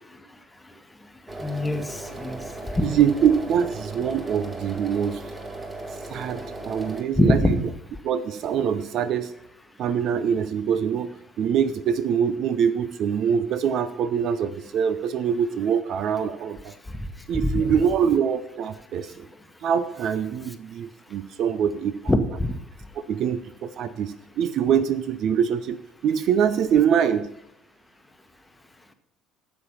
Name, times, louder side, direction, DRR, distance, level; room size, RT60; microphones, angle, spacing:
sound 1, 1.3-7.0, right 2 dB, 15° right, 1.7 m, -37 dB
voice 1, 1.4-2.4 2.8-2.9 7.2-7.6 22.1-22.5, left 1 dB, 10° left, 8 dB, 1.2 m, -22 dB
voice 2, 2.8-5.2 6.1-7.6 8.0-9.3 9.8-16.7 17.3-19.3 19.6-22.1 23.1-25.8 26.0-27.3, right 8 dB, 50° right, 13 dB, 0.5 m, -24 dB
12.0 x 7.2 x 5.6 m, 0.81 s
figure-of-eight pair, 60°, 0 cm